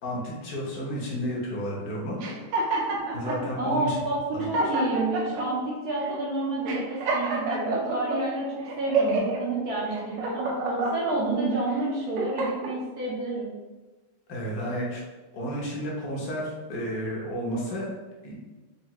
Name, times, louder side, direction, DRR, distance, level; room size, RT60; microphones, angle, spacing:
voice 1, 0.0-2.2 3.1-4.0 4.3-4.5 14.3-15.0 15.3-17.9 18.2-18.3, equal, 60° left, -4 dB, 1.0 m, -32 dB
sound 1, 2.2-3.4 4.0-4.1 4.4-5.4 6.0-6.2 6.6-8.2 8.7-9.4 9.9-11.2 11.7-12.7, right 2 dB, 90° right, 1.7 m, -28 dB
voice 2, 3.6-13.5, right 2 dB, 75° right, -5 dB, 0.9 m, -29 dB
4.7 x 2.4 x 2.9 m, 1.2 s
omnidirectional pair, 2.4 m